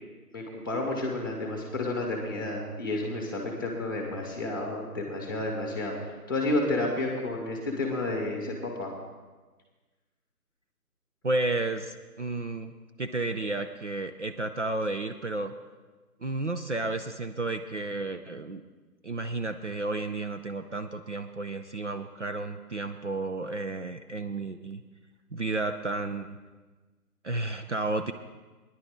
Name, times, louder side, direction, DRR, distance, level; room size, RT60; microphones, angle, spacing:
voice 1, 0.3-8.9, left 2 dB, 15° left, 1 dB, 1.2 m, -31 dB
voice 2, 11.2-12.7 13.0-15.5 16.2-18.6 19.0-24.8 25.3-26.4 27.2-28.1, right 2 dB, 50° right, 7 dB, 0.5 m, -32 dB
17.5 x 10.5 x 3.6 m, 1.3 s
figure-of-eight pair, 165°, 47 cm